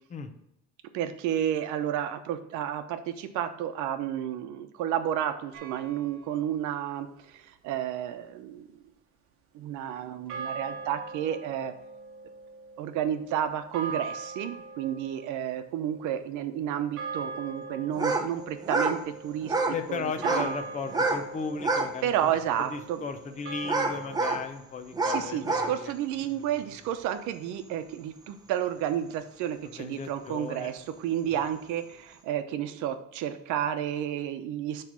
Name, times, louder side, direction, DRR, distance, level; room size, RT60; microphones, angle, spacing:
voice 1, 0.9-8.8 9.5-11.7 12.8-19.6 19.9-20.5 22.0-23.0 25.0-34.8, right 10 dB, 75° right, 9 dB, 0.9 m, -31 dB
sound 1, 5.5-6.6 10.3-24.5, right 4 dB, 45° right, 1.2 m, -41 dB
sound 2, 17.9-18.3 18.6-19.0 19.4-19.8 20.1-20.5 20.9-21.2 21.6-21.9 22.5-22.6 23.6-24.4 24.9-25.7, right 3 dB, 15° right, 0.8 m, -27 dB
voice 2, 19.6-22.1 22.7-25.9 29.6-30.7 31.3-31.4, left 5 dB, 25° left, 7 dB, 0.7 m, -36 dB
8.1 x 3.3 x 6.1 m, 0.81 s
cardioid pair, 155°, 30 cm